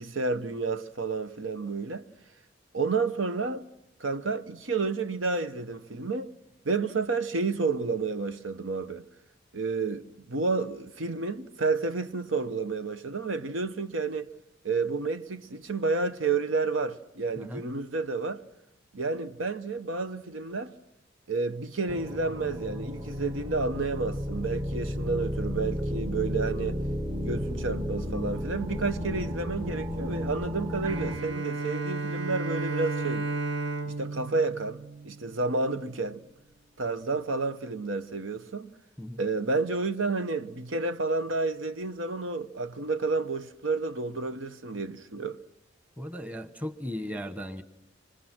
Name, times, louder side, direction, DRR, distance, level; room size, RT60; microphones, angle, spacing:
voice 1, 0.0-2.0 2.7-3.7 4.0-6.3 6.6-9.0 9.5-14.3 14.6-18.4 18.9-20.7 21.3-26.8 27.2-33.3 33.8-36.2 36.8-38.7 39.2-45.4, right 3 dB, 85° right, 1.0 m, -30 dB
sound 1, 21.9-31.2, left 1 dB, 35° right, 1.5 m, -33 dB
Bowed string instrument, 30.8-35.5, right 3 dB, 70° right, 1.4 m, -33 dB
voice 2, 46.0-47.6, equal, 10° right, 1.1 m, -36 dB
26.5 x 25.0 x 6.1 m
head